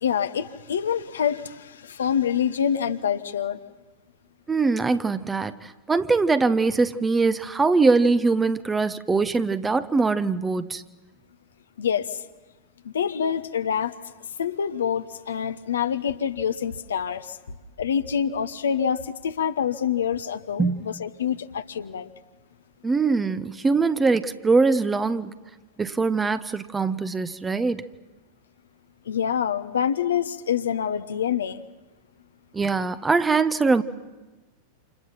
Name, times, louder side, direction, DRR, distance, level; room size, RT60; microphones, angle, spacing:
voice 1, 0.0-3.6 11.8-12.2 12.8-13.9 14.4-17.4 17.8-22.1 29.1-31.6, left 8 dB, 65° left, 1.2 m, -26 dB
voice 2, 4.5-10.8 20.6-20.9 22.8-25.3 25.8-27.8 32.5-33.8, right 4 dB, 15° right, 1.1 m, -22 dB
29.0 x 28.0 x 5.9 m
figure-of-eight pair, 90°, 0 cm